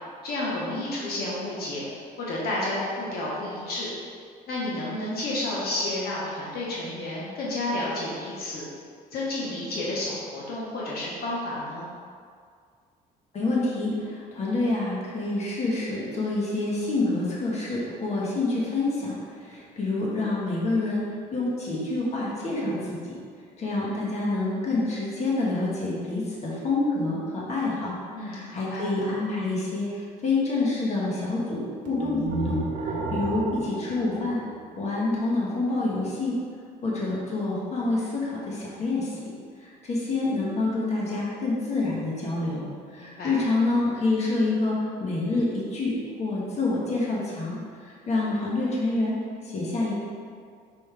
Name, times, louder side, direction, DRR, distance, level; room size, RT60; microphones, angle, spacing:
voice 1, 0.2-1.9 2.2-3.9 4.5-8.6 9.1-11.9 28.1-28.9 42.9-43.3, left 1 dB, 65° left, -6 dB, 1.4 m, -31 dB
voice 2, 13.3-23.2 23.6-34.4 34.8-36.4 36.8-39.3 39.6-49.2 49.4-49.9, left 2 dB, 40° left, -5 dB, 1.6 m, -27 dB
sound 1, 31.9-35.0, right 3 dB, 55° right, 1.1 m, -32 dB
5.5 x 5.2 x 3.4 m, 2.1 s
cardioid pair, 110°, 17 cm